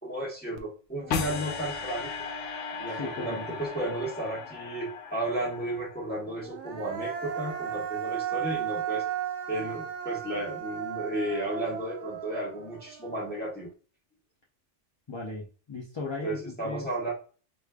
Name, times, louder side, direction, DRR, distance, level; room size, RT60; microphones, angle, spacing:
voice 1, 0.0-2.1 2.8-9.0 9.5-13.7 16.2-17.1, right 1 dB, 10° left, -4 dB, 1.0 m, -33 dB
Human voice, 0.6-0.7 1.0-4.7 6.3-13.6, right 10 dB, 75° right, 0.9 m, -36 dB
sound 1, 1.1-6.3, left 7 dB, 80° left, 0.9 m, -37 dB
voice 2, 2.9-3.6 15.1-16.9, left 3 dB, 35° left, -4 dB, 0.5 m, -37 dB
4.9 x 2.5 x 2.3 m, 0.37 s
omnidirectional pair, 1.2 m